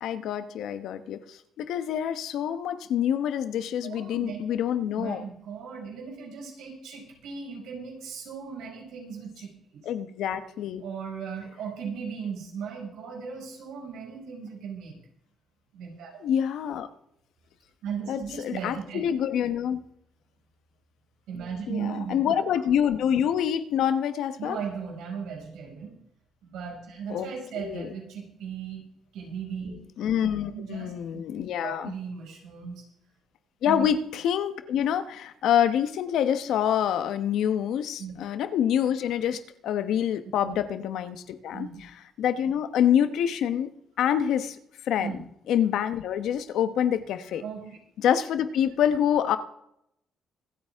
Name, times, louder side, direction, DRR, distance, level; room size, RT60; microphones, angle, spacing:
voice 1, 0.0-5.2 9.8-10.8 16.2-16.9 18.1-19.8 21.7-24.6 27.1-27.3 27.6-27.9 30.0-31.9 33.6-41.9 42.2-44.6 44.9-45.1 45.5-47.4 48.0-49.4, left 9 dB, 80° left, 11 dB, 1.1 m, -26 dB
voice 2, 3.8-9.8 10.8-15.0 15.7-16.1 17.8-19.0 21.3-22.4 24.4-26.0 26.4-28.8 29.1-29.7 30.2-30.9 31.6-32.8 33.6-33.9 38.0-38.2 41.5-41.8 45.0-45.2 47.4-47.8, right 6 dB, 85° right, -1 dB, 5.7 m, -37 dB
25.5 x 9.0 x 3.6 m, 0.76 s
cardioid pair, 90°, 0 cm